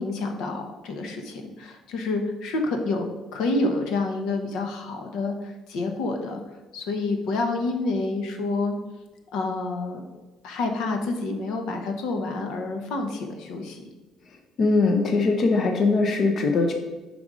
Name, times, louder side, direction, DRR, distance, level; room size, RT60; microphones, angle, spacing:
voice 1, 0.0-6.4 6.7-8.8 9.3-10.0 10.4-13.8, left 2 dB, 75° left, 4 dB, 1.0 m, -28 dB
voice 2, 14.6-16.7, left 3 dB, 45° left, 4 dB, 0.8 m, -21 dB
5.2 x 5.1 x 4.9 m, 1.2 s
cardioid pair, 140°, 0 cm